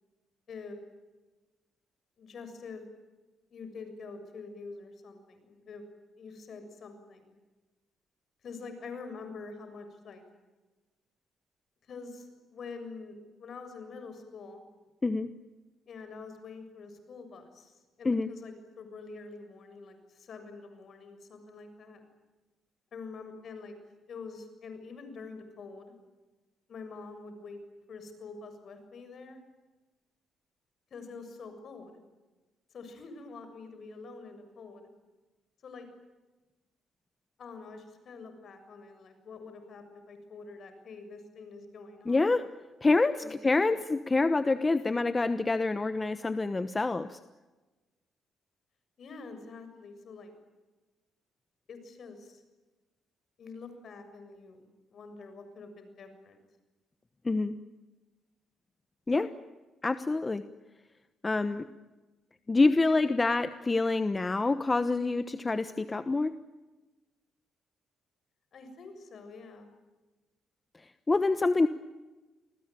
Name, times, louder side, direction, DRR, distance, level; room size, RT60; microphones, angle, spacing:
voice 1, 2.2-2.8 3.5-5.8 6.2-7.3 8.4-10.2 11.9-14.6 15.9-22.0 22.9-23.8 24.1-25.9 26.7-27.6 27.9-29.4 30.9-32.0 32.7-34.9 35.6-35.9 37.4-42.3 43.2-43.3 43.7-43.8 49.0-50.3 51.7-52.4 53.4-56.4 68.5-69.7, left 4 dB, 55° left, 8 dB, 7.0 m, -46 dB
voice 2, 42.1-42.4 42.8-47.2 57.2-57.5 59.1-59.3 59.8-60.4 61.2-61.7 62.5-66.3 71.1-71.7, left 3 dB, 25° left, 12 dB, 1.1 m, -26 dB
28.5 x 20.5 x 9.2 m, 1.2 s
cardioid pair, 90°, 0 cm